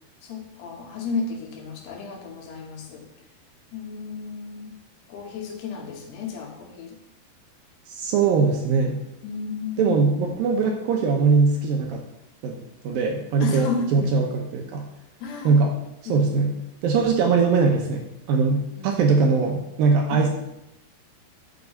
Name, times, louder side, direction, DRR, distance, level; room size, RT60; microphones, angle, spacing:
voice 1, 0.2-3.0 3.7-4.7 5.1-7.0 9.2-10.0 13.4-14.1 15.2-15.6 16.1-16.3 18.8-19.0, left 4 dB, 75° left, 2 dB, 3.3 m, -32 dB
voice 2, 7.9-9.0 9.8-12.0 12.4-12.6 12.8-14.9 15.4-15.7 16.1-16.5 16.8-18.0 18.3-20.3, right 4 dB, 75° right, 2 dB, 2.3 m, -21 dB
7.3 x 6.0 x 6.6 m, 0.83 s
omnidirectional pair, 4.8 m